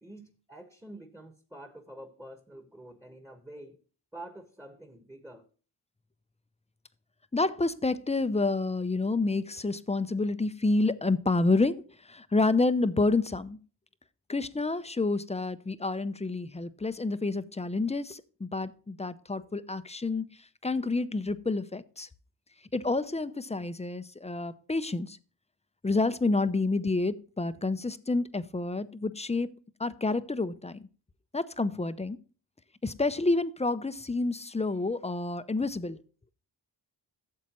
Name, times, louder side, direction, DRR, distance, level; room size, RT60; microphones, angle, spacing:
voice 1, 0.0-3.8 4.1-5.4, right 1 dB, 5° right, 1.3 m, -47 dB
voice 2, 7.3-13.6 14.3-22.1 22.7-25.2 25.8-29.5 29.8-30.9 31.3-32.2 32.8-36.0, left 3 dB, 15° left, 0.6 m, -29 dB
12.0 x 7.2 x 3.0 m
cardioid pair, 45°, 44 cm